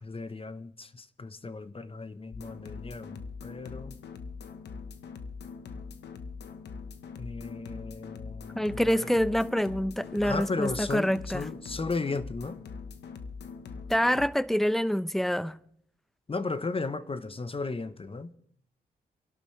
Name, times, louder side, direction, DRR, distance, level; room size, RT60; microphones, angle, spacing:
voice 1, 0.0-4.0 7.2-9.2 10.2-12.6 16.3-18.3, left 3 dB, 35° left, 0.9 m, -35 dB
sound 1, 2.3-14.3, left 5 dB, 85° left, 1.1 m, -42 dB
voice 2, 8.6-11.4 13.9-15.5, equal, ahead, 0.7 m, -26 dB
27.5 x 11.5 x 3.2 m
supercardioid pair, 50°, 17 cm